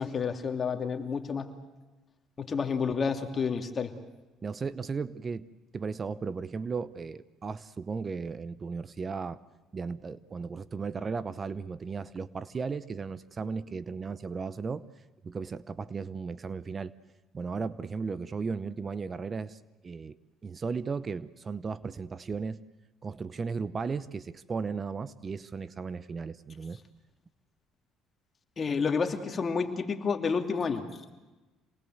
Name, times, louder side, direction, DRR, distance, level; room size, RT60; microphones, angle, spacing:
voice 1, 0.0-1.5 2.4-3.9 28.6-30.9, left 5 dB, 35° left, 5 dB, 2.7 m, -30 dB
voice 2, 4.4-5.5 5.7-9.4 9.7-14.8 15.2-16.9 17.3-20.2 20.4-22.6 23.0-26.8, right 5 dB, 35° right, 17 dB, 0.8 m, -35 dB
27.0 x 20.0 x 7.9 m, 1.2 s
supercardioid pair, 80°, 0 cm